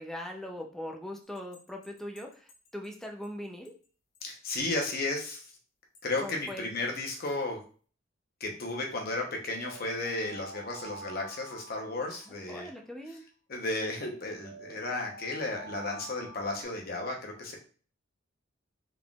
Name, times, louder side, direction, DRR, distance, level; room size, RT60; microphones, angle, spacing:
voice 1, 0.0-3.7 6.2-6.7 12.1-13.2, left 1 dB, ahead, 1 dB, 0.5 m, -41 dB
sound 1, 1.3-3.3 3.6-3.7 4.1-4.2 4.9-5.3 5.9-6.5 7.0-7.4 9.1-12.8 13.9-16.6, right 1 dB, 90° left, 1.0 m, -48 dB
voice 2, 4.2-5.4 6.0-7.6 8.4-12.7 13.5-17.6, left 2 dB, 45° left, 1 dB, 0.9 m, -34 dB
3.7 x 3.7 x 2.4 m, 0.40 s
head